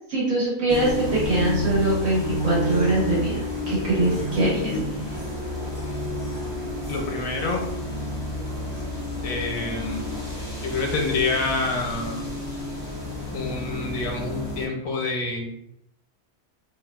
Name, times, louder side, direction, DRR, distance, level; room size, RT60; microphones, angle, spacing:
voice 1, 0.1-4.7, right 2 dB, 70° right, -7 dB, 1.6 m, -23 dB
sound 1, 0.7-14.7, left 1 dB, 15° right, 0.8 m, -30 dB
voice 2, 4.4-4.9 6.9-7.7 9.2-10.0 10.6-12.2 13.3-15.5, left 3 dB, 75° left, 2 dB, 1.0 m, -27 dB
3.1 x 2.3 x 2.3 m, 0.76 s
omnidirectional pair, 1.5 m